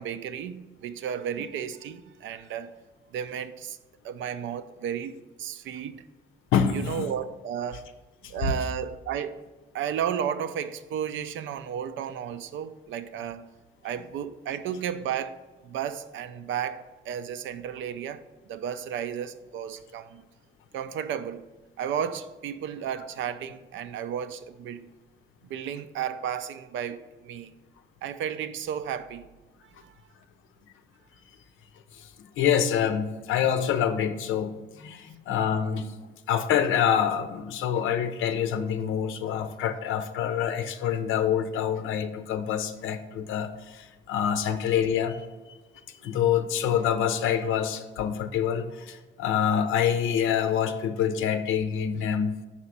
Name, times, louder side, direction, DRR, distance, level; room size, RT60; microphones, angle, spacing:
voice 1, 0.0-2.8 3.1-3.8 4.0-6.0 6.7-7.9 8.3-9.4 9.7-13.5 13.8-15.4 15.6-20.2 20.7-21.5 21.8-24.9 25.5-27.5 28.0-29.3 29.8-29.9 44.5-44.6, right 8 dB, 75° right, 0.5 m, -33 dB
voice 2, 6.5-7.1 8.4-8.5 31.9-35.9 36.3-45.2 46.0-52.3, left 8 dB, 85° left, 0.6 m, -26 dB
5.0 x 4.3 x 5.7 m
cardioid pair, 90°, 20 cm